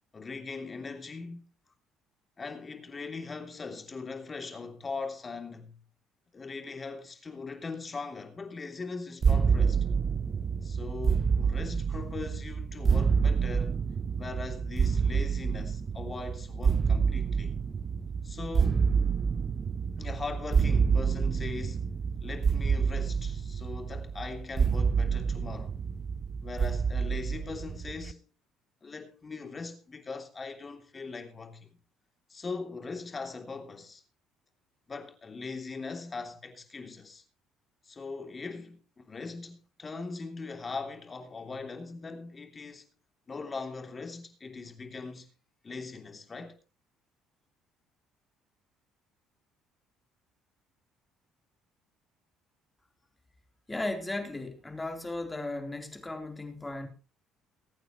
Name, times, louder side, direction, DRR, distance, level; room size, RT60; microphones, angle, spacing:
voice 1, 0.1-1.5 2.4-5.8 6.3-9.8 10.6-13.8 14.2-17.6 18.2-18.9 20.0-21.9 22.2-25.7 26.4-28.2 28.8-31.7 32.3-34.0 34.9-37.2 37.8-42.9 43.3-45.3 45.6-46.6, left 4 dB, 30° left, 3.1 m, -40 dB
sound 1, 9.2-28.1, right 6 dB, 40° right, 0.6 m, -28 dB
voice 2, 53.7-56.9, left 2 dB, 15° left, 3.8 m, -36 dB
23.5 x 9.1 x 3.2 m
supercardioid pair, 70°, 0 cm